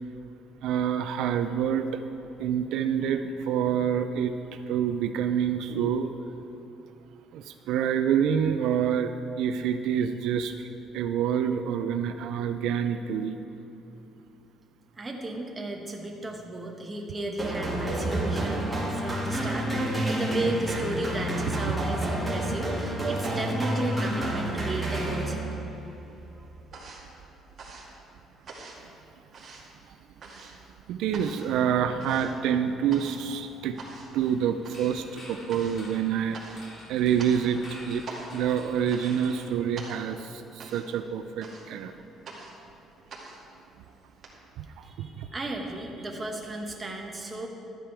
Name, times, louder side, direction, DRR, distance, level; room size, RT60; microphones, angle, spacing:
voice 1, 0.6-2.0 2.4-6.1 7.3-9.1 9.4-10.7 10.9-13.4 30.4-30.6 30.9-36.6 36.9-41.9 44.6-45.3, right 8 dB, 80° right, 8 dB, 0.5 m, -27 dB
voice 2, 15.0-25.5 26.3-26.5 44.8-47.5, right 2 dB, 15° right, 1 dB, 1.2 m, -34 dB
sound 1, 17.4-25.7, right 1 dB, 5° left, 2.3 m, -29 dB
sound 2, 26.0-44.3, right 3 dB, 40° right, 2.2 m, -46 dB
sound 3, 34.2-40.2, left 1 dB, 40° left, 2.8 m, -48 dB
12.5 x 9.1 x 4.8 m, 2.9 s
cardioid pair, 140°, 0 cm